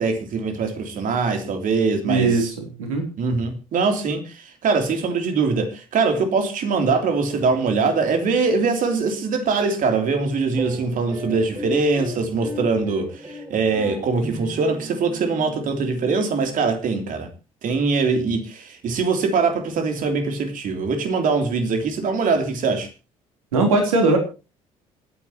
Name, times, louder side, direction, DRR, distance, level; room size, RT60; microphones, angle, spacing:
voice 1, 0.0-2.3 3.2-17.3 17.6-22.9, right 4 dB, 50° right, 3.1 m, -22 dB
voice 2, 2.1-3.1 23.5-24.2, right 3 dB, 75° right, 3.4 m, -20 dB
sound 1, 10.5-17.1, equal, 20° right, 6.4 m, -37 dB
27.0 x 9.7 x 3.0 m
figure-of-eight pair, 50°, 18 cm